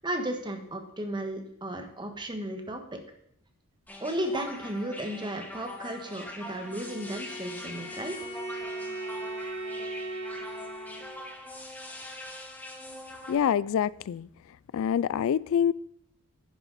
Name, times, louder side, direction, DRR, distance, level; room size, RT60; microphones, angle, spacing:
voice 1, 0.0-2.8 4.0-8.2, right 1 dB, 20° right, 4 dB, 1.4 m, -34 dB
sound 1, 3.9-13.4, left 1 dB, 10° left, 1.3 m, -43 dB
Bowed string instrument, 6.5-11.3, right 1 dB, 30° left, 1.9 m, -38 dB
voice 2, 13.3-14.3 14.7-15.7, left 8 dB, 65° left, 20 dB, 0.3 m, -26 dB
10.5 x 10.0 x 4.1 m, 0.70 s
head